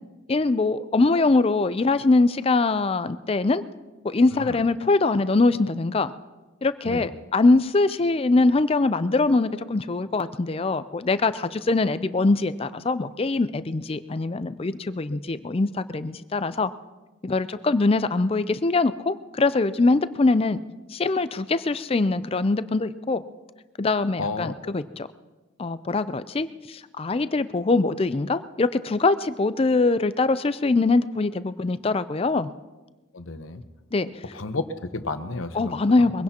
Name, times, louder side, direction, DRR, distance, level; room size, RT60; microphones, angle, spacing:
voice 1, 0.3-3.6 4.0-6.1 6.6-16.7 17.2-20.6 20.9-23.2 23.8-25.1 25.6-32.5 33.9-34.2 35.5-36.2, left 3 dB, 30° left, 13 dB, 0.4 m, -23 dB
voice 2, 24.2-24.5 33.1-33.6 34.3-36.1, left 3 dB, 90° left, 9 dB, 1.0 m, -32 dB
22.5 x 16.5 x 2.9 m, 1.2 s
head